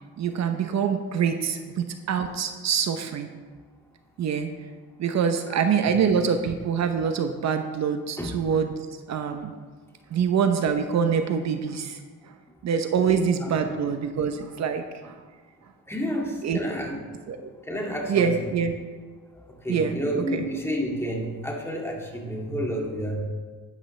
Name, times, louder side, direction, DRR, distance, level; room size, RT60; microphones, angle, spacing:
voice 1, 0.2-3.3 4.2-4.5 5.0-8.7 9.1-9.5 10.1-12.0 12.6-15.2 16.4-16.6 17.3-17.5 18.1-18.8 19.7-20.4, right 6 dB, 60° right, 7 dB, 0.8 m, -25 dB
voice 2, 13.1-13.6 15.9-17.0 17.6-18.3 19.5-23.2, equal, 10° left, -1 dB, 2.3 m, -30 dB
11.5 x 10.5 x 3.3 m, 1.4 s
cardioid pair, 90°, 30 cm